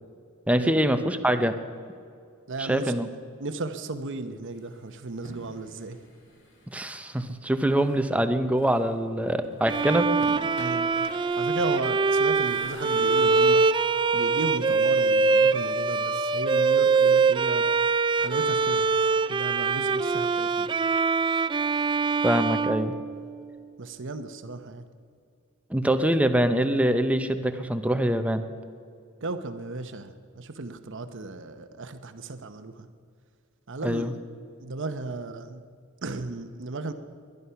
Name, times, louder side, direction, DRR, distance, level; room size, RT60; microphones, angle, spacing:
voice 1, 0.5-1.6 2.6-3.1 6.7-10.1 22.2-22.9 25.7-28.4 33.8-34.1, right 1 dB, 5° right, 9 dB, 0.7 m, -24 dB
voice 2, 2.5-6.0 10.6-10.9 11.4-13.7 14.1-17.7 18.2-18.9 19.3-20.7 23.8-24.8 29.2-32.9 33.7-34.1 34.6-35.6 36.0-36.9, right 3 dB, 60° right, 9 dB, 0.9 m, -35 dB
sound 1, 4.5-7.1 7.8-9.1 9.4-13.2, equal, 55° left, 3.2 m, -47 dB
Bowed string instrument, 9.7-23.6, right 4 dB, 20° right, 0.3 m, -23 dB
21.0 x 11.0 x 5.8 m, 2.3 s
head